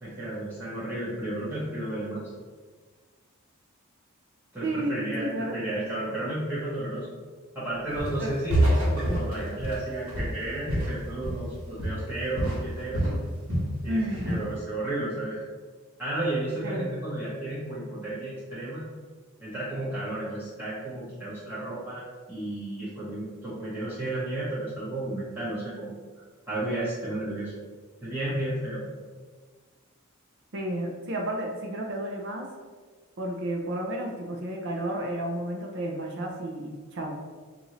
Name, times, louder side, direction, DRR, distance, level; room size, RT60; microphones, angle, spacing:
voice 1, 0.0-2.2 4.5-7.1 7.5-13.1 13.8-15.4 16.0-18.8 19.4-25.9 26.5-27.5 28.0-28.9, right 1 dB, 10° right, -11 dB, 0.9 m, -33 dB
voice 2, 4.6-5.6 8.2-8.3 13.9-14.2 16.6-16.9 30.5-32.5 33.2-37.2, right 1 dB, 55° right, 1 dB, 0.6 m, -32 dB
Walk footsteps, 8.0-8.2 8.5-11.5 11.8-12.1 12.4-13.8 14.1-14.5, right 1 dB, 85° right, 1.2 m, -27 dB
5.4 x 2.6 x 2.9 m, 1.5 s
head